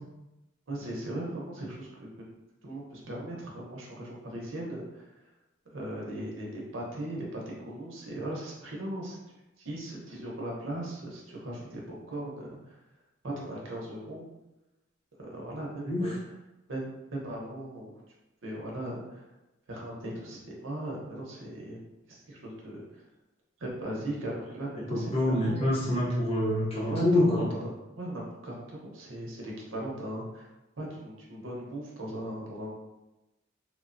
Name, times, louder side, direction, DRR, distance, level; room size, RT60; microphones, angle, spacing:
voice 1, 0.7-2.1 2.6-5.0 5.7-9.2 9.6-11.8 12.1-12.8 13.2-14.3 15.2-16.1 16.7-17.9 18.4-19.3 19.7-21.8 22.1-22.8 23.6-25.7 26.9-27.7 28.0-30.4 30.8-32.7, right 1 dB, 70° right, -3 dB, 0.8 m, -38 dB
voice 2, 24.9-27.5, left 1 dB, 30° left, -9 dB, 0.7 m, -26 dB
3.3 x 2.1 x 2.5 m, 0.99 s
head